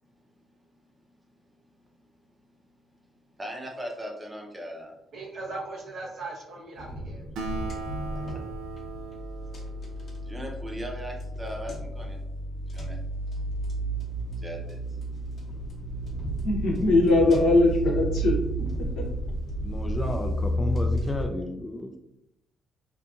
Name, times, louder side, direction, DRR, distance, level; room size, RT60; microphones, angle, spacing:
voice 1, 3.4-4.9 10.2-12.2 12.7-13.0 14.4-14.8, equal, 15° right, 0 dB, 0.7 m, -38 dB
voice 2, 5.1-7.2, right 3 dB, 65° right, -2 dB, 0.8 m, -38 dB
sound 1, 6.8-21.2, right 1 dB, 45° left, 0.8 m, -32 dB
Acoustic guitar, 7.4-11.1, right 4 dB, 85° right, 0.4 m, -39 dB
voice 3, 16.4-18.6 19.0-19.1, left 2 dB, 90° left, -1 dB, 0.7 m, -21 dB
voice 4, 19.6-21.9, left 1 dB, 20° left, 5 dB, 0.3 m, -32 dB
2.7 x 2.4 x 2.4 m, 0.81 s
cardioid pair, 90°, 0 cm